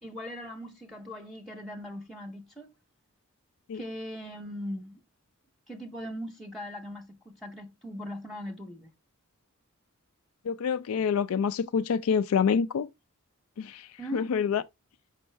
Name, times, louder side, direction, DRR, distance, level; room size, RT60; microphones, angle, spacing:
voice 1, 0.0-2.7 3.7-5.0 5.7-8.9 11.0-11.1 14.0-14.3, equal, ahead, 0.7 m, -40 dB
voice 2, 10.5-12.9 13.6-14.6, left 6 dB, 75° left, 0.4 m, -27 dB
5.5 x 5.3 x 3.3 m
head